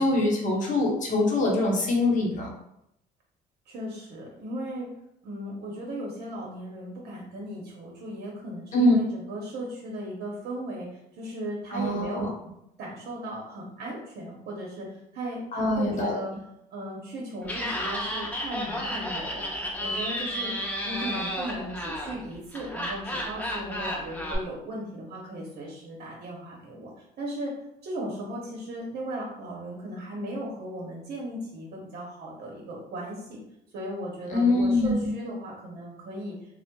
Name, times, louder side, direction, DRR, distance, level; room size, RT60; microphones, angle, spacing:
voice 1, 0.0-2.5 8.7-8.9 11.7-12.3 15.5-16.2 34.3-35.1, left 2 dB, 50° left, -2 dB, 0.9 m, -23 dB
voice 2, 3.7-4.9 5.2-12.3 12.8-16.3 16.7-20.5 20.8-26.9 27.2-27.5 27.8-33.4 33.7-36.4, right 1 dB, 60° right, -2 dB, 0.8 m, -37 dB
Laughter, 17.4-24.4, equal, 10° left, 0.6 m, -32 dB
4.2 x 2.0 x 2.2 m, 0.80 s
cardioid pair, 110°, 17 cm